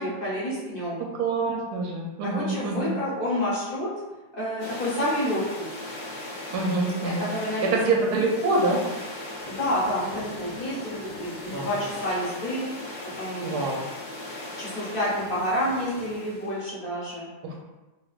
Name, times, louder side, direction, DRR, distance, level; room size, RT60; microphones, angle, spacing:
voice 1, 0.0-1.0 2.2-3.9 4.3-5.7 7.0-7.6 9.4-12.7 13.1-13.6 14.6-17.3, equal, 45° left, -8 dB, 0.8 m, -29 dB
voice 2, 1.2-2.9 6.5-7.3 7.6-8.8 11.5-11.7 13.4-13.8 17.4-17.5, right 3 dB, 70° right, -1 dB, 1.0 m, -25 dB
sound 1, 4.6-16.6, left 2 dB, 70° left, 0.5 m, -38 dB
3.2 x 2.7 x 2.4 m, 1.1 s
omnidirectional pair, 2.0 m